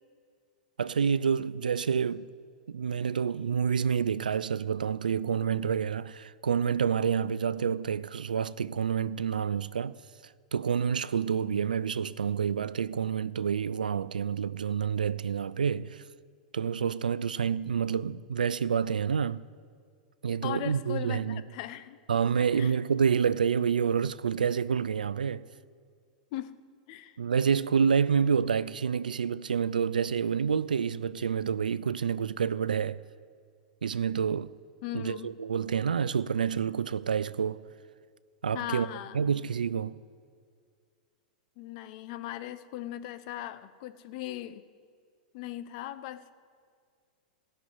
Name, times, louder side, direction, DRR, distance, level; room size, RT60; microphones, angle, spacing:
voice 1, 0.8-2.3 2.7-10.0 10.5-16.0 16.5-19.5 20.2-21.4 22.1-25.4 27.2-33.0 33.8-34.5 34.9-37.6 38.4-38.9 39.1-40.0, right 7 dB, 90° right, 0.4 m, -28 dB
voice 2, 20.4-22.0 22.5-22.7 26.3-26.6 26.9-27.2 34.8-35.3 38.5-39.2 41.6-44.6 45.3-46.3, left 13 dB, 55° left, 0.8 m, -38 dB
16.0 x 6.7 x 9.5 m
hypercardioid pair, 105°, 4 cm